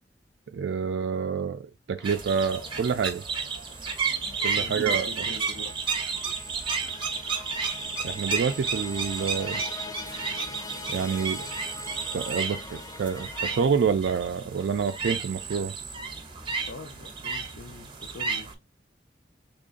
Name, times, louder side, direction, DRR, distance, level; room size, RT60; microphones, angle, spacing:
voice 1, 0.5-3.2 4.4-5.3 8.0-9.6 10.9-11.4 12.1-15.7, right 6 dB, 75° right, 0.4 m, -28 dB
sound 1, 2.0-13.7, left 4 dB, 20° left, 0.3 m, -43 dB
sound 2, 2.0-18.5, right 5 dB, 30° right, 0.7 m, -32 dB
sound 3, 3.4-10.2, left 4 dB, 85° left, 1.2 m, -54 dB
voice 2, 4.5-5.8 16.7-18.5, left 3 dB, 70° left, 0.6 m, -44 dB
3.8 x 3.5 x 2.4 m
head